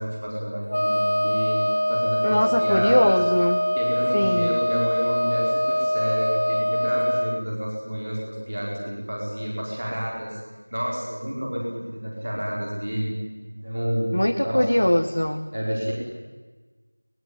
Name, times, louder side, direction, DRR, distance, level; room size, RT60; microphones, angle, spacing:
voice 1, 0.0-3.1 3.7-10.4 10.7-11.6 11.9-13.1 13.4-14.1 14.4-14.7 15.5-15.9, equal, 20° right, -3 dB, 4.8 m, -29 dB
Wind instrument woodwind instrument, 0.7-7.4, equal, 60° left, 0.7 m, -23 dB
voice 2, 2.2-3.6 4.1-4.6 14.1-15.5, left 1 dB, 30° left, 4 dB, 1.2 m, -21 dB
24.0 x 20.0 x 9.7 m, 1.3 s
figure-of-eight pair, 180°, 0 cm